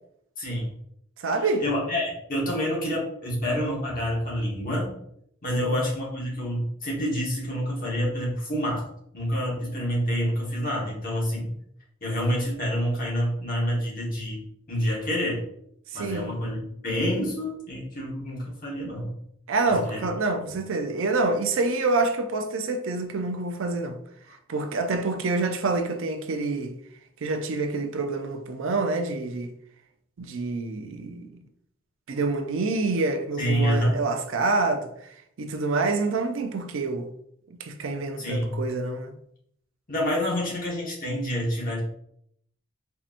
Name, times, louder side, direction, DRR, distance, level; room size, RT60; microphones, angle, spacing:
voice 1, 0.4-0.7 1.6-4.9 5.4-8.8 9.1-11.5 12.0-14.4 14.7-15.4 15.9-19.1 19.7-20.1 20.4-20.5 33.4-34.0 38.2-38.6 39.9-41.8, equal, 40° left, 1.3 m, -27 dB
voice 2, 1.2-1.6 5.6-5.8 15.9-16.3 19.5-24.0 24.5-26.8 27.2-29.5 30.2-31.4 32.1-34.9 35.4-37.1 37.6-39.1, right 3 dB, 70° right, 0.5 m, -27 dB
4.3 x 2.8 x 2.5 m
head